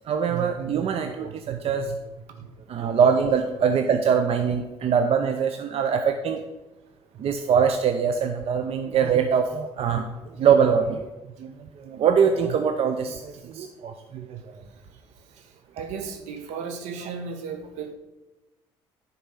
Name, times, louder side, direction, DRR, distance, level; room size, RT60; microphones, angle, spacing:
voice 1, 0.1-1.9 2.7-6.4 7.2-10.1 10.4-11.1 11.4-11.5 11.9-14.3, right 7 dB, 55° right, 6 dB, 0.7 m, -23 dB
voice 2, 15.7-17.9, right 5 dB, 75° right, 6 dB, 1.2 m, -34 dB
10.0 x 4.2 x 5.8 m, 1.1 s
hypercardioid pair, 60°, 12 cm